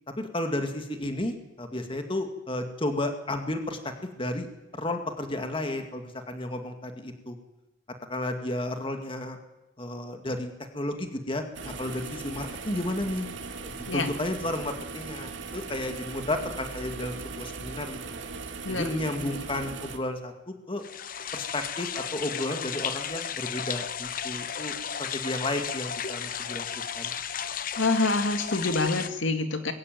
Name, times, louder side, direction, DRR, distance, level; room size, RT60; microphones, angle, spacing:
voice 1, 0.2-3.8 4.2-4.5 4.7-7.4 8.1-9.4 9.8-13.3 13.6-18.2 18.7-20.8 21.3-26.7 26.9-27.1, left 1 dB, 30° left, 6 dB, 2.2 m, -32 dB
sound 1, 11.5-20.0, right 4 dB, 80° right, 2.4 m, -39 dB
sound 2, 20.8-29.1, left 8 dB, 50° left, 0.9 m, -34 dB
voice 2, 27.8-29.7, left 3 dB, 90° left, 7 dB, 2.2 m, -26 dB
21.5 x 17.5 x 9.2 m, 0.98 s
head